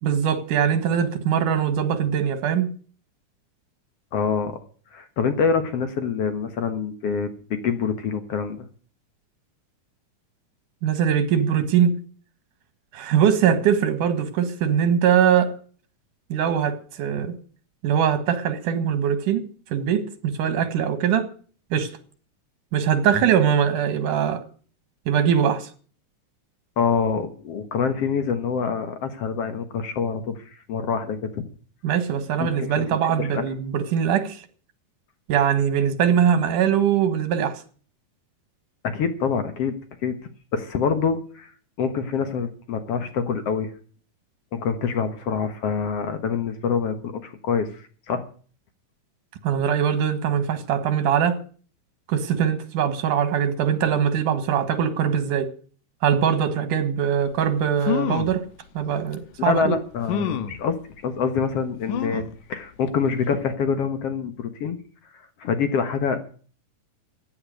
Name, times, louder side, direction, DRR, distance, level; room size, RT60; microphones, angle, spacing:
voice 1, 0.0-2.7 10.8-12.0 12.9-15.5 16.3-17.4 17.8-19.4 19.7-21.3 21.7-21.9 22.7-24.4 25.1-25.7 31.8-34.4 35.3-37.6 49.4-51.4 52.1-55.5 56.0-58.4 58.7-59.8, right 8 dB, 85° right, 3.2 m, -22 dB
voice 2, 4.1-4.6 4.9-8.7 26.8-31.4 32.4-33.4 38.8-39.7 40.0-40.2 40.5-41.5 41.8-43.7 44.5-48.2 59.4-60.8 61.0-62.2 62.5-64.8 65.4-66.2, left 6 dB, 55° left, 2.1 m, -26 dB
sound 1, 57.4-57.5 57.8-58.4 59.1-59.2 60.1-60.6 61.9-62.4 62.9-63.0 63.3-63.4, left 8 dB, 90° left, 2.5 m, -27 dB
15.5 x 9.8 x 6.5 m
omnidirectional pair, 3.6 m